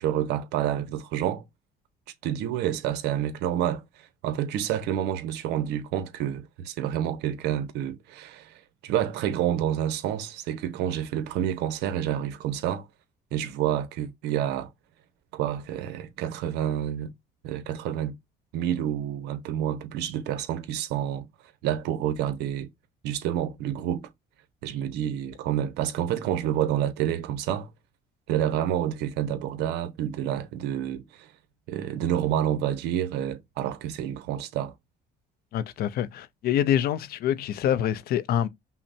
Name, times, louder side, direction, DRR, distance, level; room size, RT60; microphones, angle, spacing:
voice 1, 0.0-1.4 2.2-12.9 13.3-14.7 15.3-17.1 17.4-18.1 18.5-21.3 21.6-22.7 23.0-24.1 24.6-27.7 28.3-31.3 31.7-34.7, right 11 dB, 90° right, 0.8 m, -28 dB
voice 2, 35.5-38.5, left 10 dB, 65° left, 0.5 m, -26 dB
5.6 x 2.1 x 2.6 m
cardioid pair, 110°, 17 cm